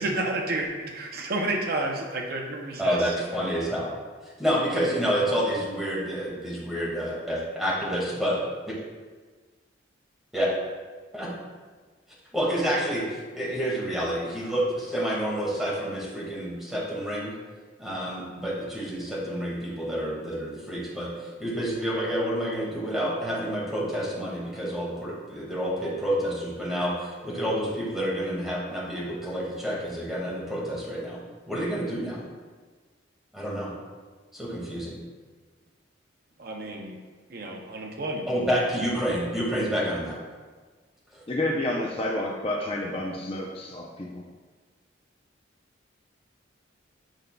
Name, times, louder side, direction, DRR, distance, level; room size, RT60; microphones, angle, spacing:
voice 1, 0.0-3.1 36.4-37.0 37.3-38.3, right 2 dB, 50° right, 1 dB, 0.6 m, -30 dB
voice 2, 2.8-3.9 4.4-8.4 8.6-8.7 10.3-10.5 11.1-11.3 12.3-17.3 17.8-31.2 31.5-32.2 33.3-33.7 34.3-35.0 38.3-40.2 41.1-41.2, equal, ahead, -6 dB, 1.7 m, -28 dB
voice 3, 41.3-44.2, left 1 dB, 30° left, -1 dB, 0.5 m, -29 dB
8.9 x 5.2 x 2.2 m, 1.4 s
head